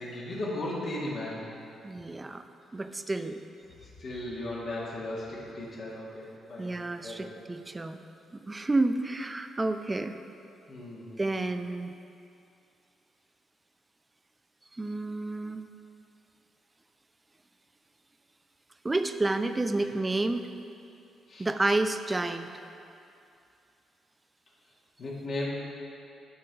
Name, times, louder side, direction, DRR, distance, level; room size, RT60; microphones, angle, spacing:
voice 1, 0.0-1.5 3.8-6.8 7.0-7.3 10.7-11.2 19.8-19.9 21.3-21.5 25.0-25.5, left 1 dB, 55° left, -6 dB, 1.8 m, -36 dB
voice 2, 1.8-2.4 2.7-3.4 6.6-8.0 8.3-10.2 11.2-11.9 14.7-15.6 18.8-20.5 21.4-22.5, right 2 dB, 20° right, 8 dB, 0.4 m, -30 dB
11.0 x 3.8 x 5.6 m, 2.6 s
cardioid pair, 90°, 0 cm